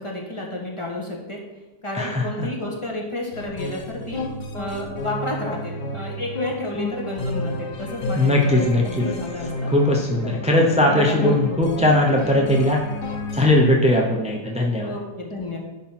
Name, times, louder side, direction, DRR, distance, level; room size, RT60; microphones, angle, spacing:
voice 1, 0.0-1.4 1.8-4.2 4.5-9.7 10.2-10.4 10.8-11.9 14.8-15.6, left 1 dB, 20° left, -2 dB, 1.5 m, -31 dB
sound 1, 3.3-13.5, left 2 dB, 85° left, 1.5 m, -31 dB
voice 2, 8.2-8.8 9.7-12.8 13.3-14.9, left 1 dB, 10° right, -1 dB, 0.3 m, -19 dB
10.5 x 3.9 x 5.8 m, 1.1 s
omnidirectional pair, 1.7 m